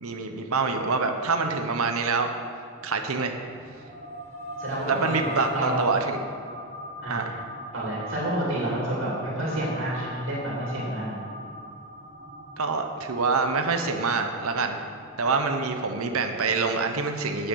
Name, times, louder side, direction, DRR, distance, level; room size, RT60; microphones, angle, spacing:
voice 1, 0.0-2.3 2.8-3.4 4.9-6.2 7.1-7.4 12.6-14.8 15.2-17.5, right 4 dB, 75° right, 5 dB, 0.9 m, -26 dB
sound 1, 2.8-16.7, equal, 30° right, 2.3 m, -41 dB
voice 2, 4.6-5.8 7.0-7.2 7.7-11.2, right 1 dB, 60° right, -5 dB, 2.6 m, -29 dB
9.0 x 8.0 x 6.3 m, 2.4 s
head